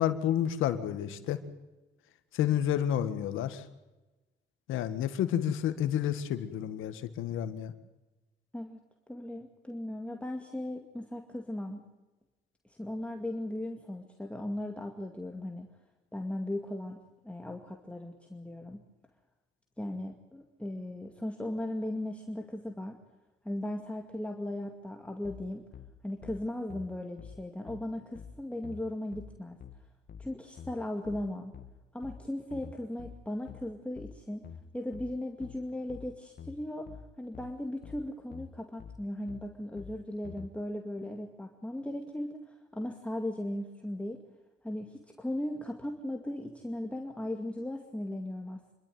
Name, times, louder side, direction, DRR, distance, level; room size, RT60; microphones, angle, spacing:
voice 1, 0.0-1.4 2.3-3.6 4.7-7.7, left 10 dB, 90° left, 10 dB, 1.8 m, -30 dB
voice 2, 9.1-11.8 12.6-15.7 16.1-18.8 19.8-23.0 23.4-25.7 26.0-29.6 30.2-31.5 31.9-34.5 34.7-36.9 37.2-44.2 44.6-48.7, left 1 dB, 5° left, 2 dB, 2.3 m, -37 dB
sound 1, 25.2-40.5, left 6 dB, 50° left, 2.0 m, -48 dB
27.0 x 12.5 x 9.5 m, 1.1 s
cardioid pair, 90°, 20 cm